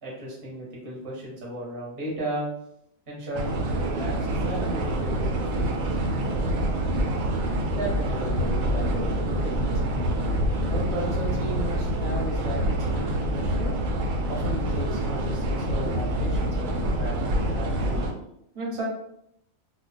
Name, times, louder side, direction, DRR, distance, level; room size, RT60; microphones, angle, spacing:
voice 1, 0.0-2.5 3.1-5.9 7.7-10.1 10.6-13.7 14.3-18.1 18.5-18.8, right 1 dB, 25° right, -4 dB, 0.9 m, -35 dB
sound 1, 3.3-18.1, right 1 dB, 80° right, 1.0 m, -26 dB
2.3 x 2.2 x 3.9 m, 0.75 s
omnidirectional pair, 1.4 m